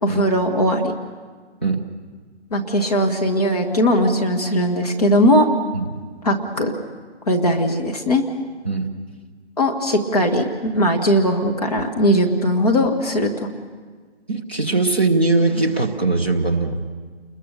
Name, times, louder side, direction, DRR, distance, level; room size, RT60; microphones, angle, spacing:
voice 1, 0.0-0.9 2.5-5.5 6.2-6.7 7.3-8.2 9.6-13.5, equal, 35° left, 2 dB, 1.5 m, -19 dB
voice 2, 14.3-16.8, right 3 dB, 10° left, -5 dB, 0.7 m, -20 dB
29.5 x 22.0 x 6.7 m, 1.5 s
figure-of-eight pair, 165°, 35 cm